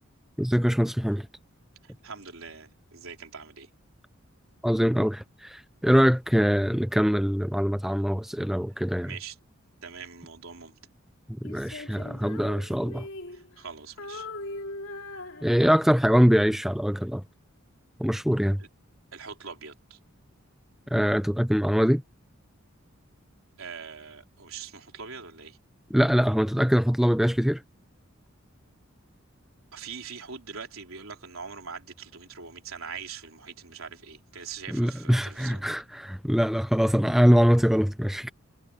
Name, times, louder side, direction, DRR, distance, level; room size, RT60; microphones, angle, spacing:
voice 1, 0.4-1.3 4.6-9.1 11.4-13.1 15.4-17.2 18.0-18.6 20.9-22.0 25.9-27.6 34.7-38.3, equal, ahead, 0.5 m, -23 dB
voice 2, 1.8-3.7 9.0-9.4 9.8-10.8 13.3-14.3 18.6-18.7 19.1-20.0 23.6-25.6 29.7-35.7, right 6 dB, 80° right, 3.7 m, -42 dB
Female singing, 11.4-13.7 14.0-16.0, left 2 dB, 75° left, 3.2 m, -40 dB
head